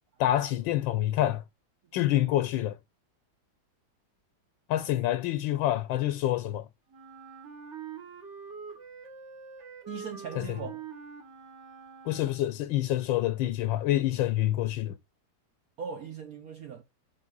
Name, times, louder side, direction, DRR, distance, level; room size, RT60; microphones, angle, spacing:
voice 1, 0.2-1.4 1.9-2.8 4.7-6.7 10.4-10.5 12.1-14.9, left 13 dB, 85° left, 1.3 m, -27 dB
Wind instrument woodwind instrument, 6.9-12.7, right 6 dB, 40° right, 1.5 m, -45 dB
voice 2, 9.9-10.8 15.8-16.8, right 6 dB, 60° right, 1.1 m, -39 dB
7.3 x 3.5 x 5.3 m
omnidirectional pair, 2.1 m